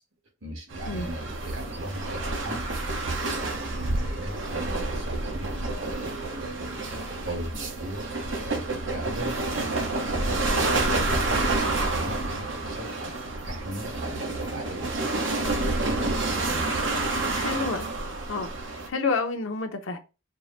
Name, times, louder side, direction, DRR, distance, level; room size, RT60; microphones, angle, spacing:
voice 1, 0.4-8.0 8.4-13.1 13.4-15.2 15.7-17.7, right 1 dB, 90° right, 1.6 m, -38 dB
sound 1, 0.7-18.9, right 2 dB, 70° right, 1.0 m, -29 dB
voice 2, 17.3-18.0 18.3-18.5 18.9-20.0, left 4 dB, 85° left, 0.7 m, -29 dB
4.6 x 2.1 x 3.9 m
head